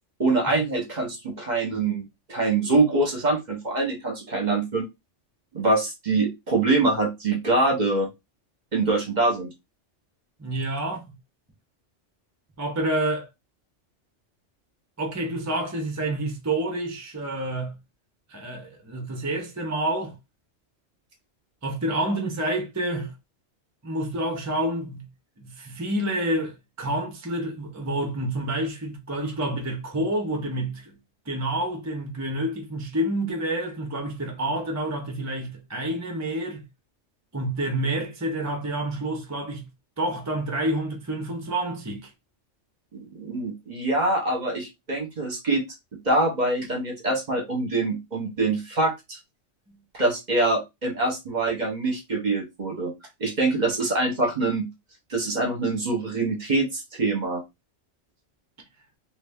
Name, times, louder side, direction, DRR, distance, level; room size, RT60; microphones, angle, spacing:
voice 1, 0.2-2.0 2.3-4.8 5.5-8.1 8.7-9.5 42.9-45.6 46.0-49.2 49.9-52.9 53.2-54.7 55.1-57.4, right 2 dB, 40° right, 0.9 m, -24 dB
voice 2, 10.4-11.0 12.6-13.3 15.0-17.7 18.3-20.2 21.6-23.1 23.8-25.1 25.4-30.9 31.3-36.6 37.3-39.7 40.0-42.1, right 1 dB, 20° right, 0.6 m, -28 dB
2.6 x 2.6 x 3.4 m
omnidirectional pair, 1.2 m